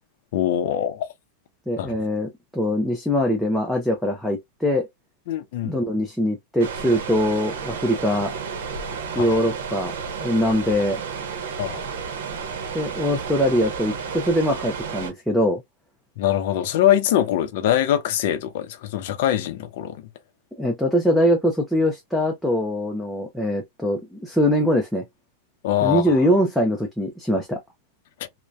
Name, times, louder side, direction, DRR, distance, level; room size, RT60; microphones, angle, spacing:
voice 1, 0.3-1.1 1.8-1.9 5.3-5.8 9.2-9.3 11.6-11.8 16.2-20.1 25.6-26.2 28.2-28.3, left 11 dB, 55° left, 0.5 m, -23 dB
voice 2, 1.7-4.9 5.6-8.3 9.1-11.0 12.7-15.6 20.6-25.0 25.8-27.6, equal, ahead, 0.4 m, -22 dB
sound 1, 6.6-15.1, right 6 dB, 90° right, 0.8 m, -32 dB
2.6 x 2.1 x 2.2 m
supercardioid pair, 170°, 0 cm